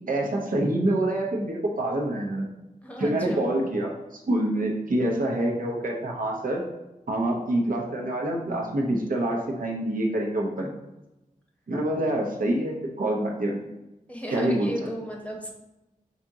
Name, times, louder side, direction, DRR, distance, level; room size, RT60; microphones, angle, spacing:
voice 1, 0.1-2.5 3.0-6.6 7.1-10.7 11.7-13.6 14.3-14.9, right 1 dB, 70° right, -1 dB, 0.8 m, -26 dB
voice 2, 2.8-3.4 14.1-15.5, equal, 10° left, -1 dB, 0.9 m, -35 dB
5.0 x 2.9 x 3.6 m, 0.98 s
wide cardioid pair, 80°, 15 cm